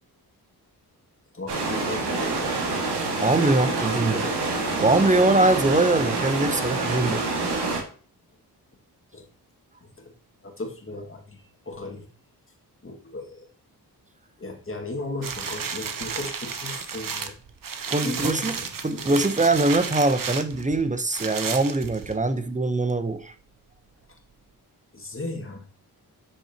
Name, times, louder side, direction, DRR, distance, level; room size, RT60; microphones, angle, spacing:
voice 1, 1.3-2.5 9.1-9.2 9.8-10.1 10.4-12.1 12.8-13.5 14.4-17.4 18.0-19.1 24.1-24.2 24.9-25.7, left 2 dB, 30° left, 2.1 m, -36 dB
sound 1, 1.5-7.8, right 3 dB, 85° right, 2.0 m, -27 dB
voice 2, 3.2-4.3 4.8-7.3 17.9-18.5 18.8-23.3, right 2 dB, 20° right, 0.9 m, -22 dB
sound 2, 15.2-22.4 22.9-23.0, right 6 dB, 55° right, 1.1 m, -33 dB
8.1 x 6.2 x 2.9 m
cardioid pair, 60°, 40 cm